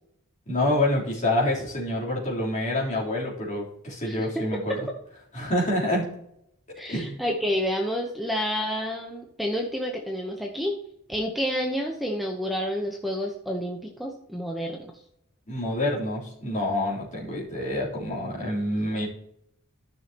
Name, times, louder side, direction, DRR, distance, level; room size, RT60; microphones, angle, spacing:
voice 1, 0.5-4.9 5.3-6.1 6.9-7.2 15.5-19.1, left 1 dB, 35° left, -6 dB, 3.4 m, -27 dB
voice 2, 4.1-4.4 6.8-10.8 11.1-14.9, equal, ahead, 0 dB, 0.8 m, -29 dB
13.5 x 6.3 x 2.9 m, 0.75 s
head